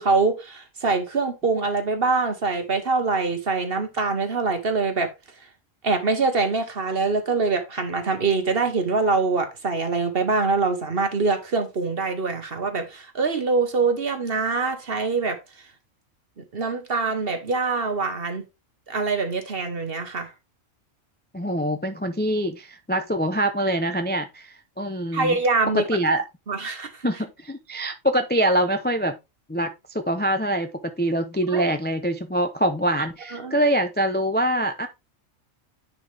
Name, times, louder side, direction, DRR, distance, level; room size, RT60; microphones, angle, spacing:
voice 1, 0.0-5.1 5.8-15.4 16.4-18.4 18.9-20.3 25.1-25.9 26.5-27.1 31.5-31.6 33.3-33.6, right 4 dB, 45° right, 1.5 m, -24 dB
voice 2, 21.3-25.4 25.9-26.2 27.0-29.2 29.5-30.7 31.0-34.9, right 1 dB, 15° left, 0.4 m, -24 dB
10.0 x 4.3 x 3.4 m
omnidirectional pair, 1.4 m